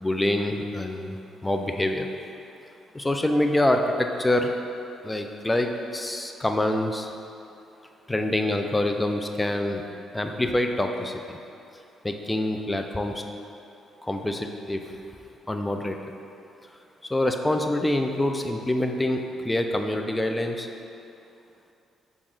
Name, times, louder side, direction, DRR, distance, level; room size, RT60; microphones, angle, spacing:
voice 1, 0.0-2.1 2.9-4.5 5.0-7.1 8.1-9.8 10.1-11.1 12.0-13.1 14.0-14.8 15.5-16.0 17.1-20.7, left 1 dB, 15° left, 4 dB, 0.3 m, -26 dB
5.9 x 2.4 x 3.6 m, 2.7 s
cardioid pair, 90°, 0 cm